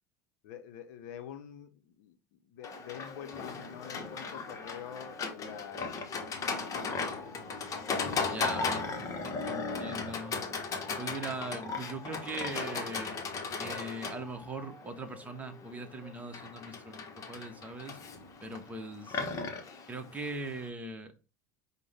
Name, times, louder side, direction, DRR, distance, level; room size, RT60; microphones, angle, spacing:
voice 1, 0.4-7.5 9.1-9.3, left 9 dB, 65° left, 0.6 m, -47 dB
Livestock farm animals working animals, 2.6-20.7, left 4 dB, 35° left, 0.8 m, -37 dB
sound 1, 2.6-16.1, left 1 dB, 5° left, 1.1 m, -55 dB
voice 2, 8.3-10.4 11.0-13.2 13.6-18.0 18.4-19.3 19.9-21.1, right 2 dB, 15° right, 0.9 m, -41 dB
5.2 x 2.1 x 3.4 m
hypercardioid pair, 80°, 9 cm